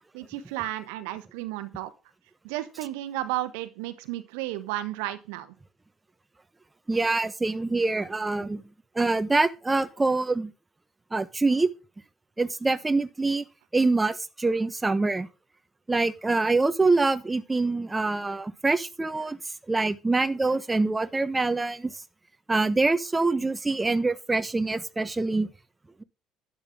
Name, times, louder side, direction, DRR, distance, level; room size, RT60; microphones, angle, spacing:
voice 1, 0.1-1.9 2.4-5.5, right 15 dB, 70° right, 1.2 m, -33 dB
voice 2, 6.9-8.6 8.9-10.5 11.1-11.7 12.4-13.4 13.7-15.3 15.9-19.4 19.7-21.9 22.5-25.5, right 3 dB, 15° right, 1.2 m, -25 dB
12.0 x 10.5 x 3.7 m
figure-of-eight pair, 55°, 0 cm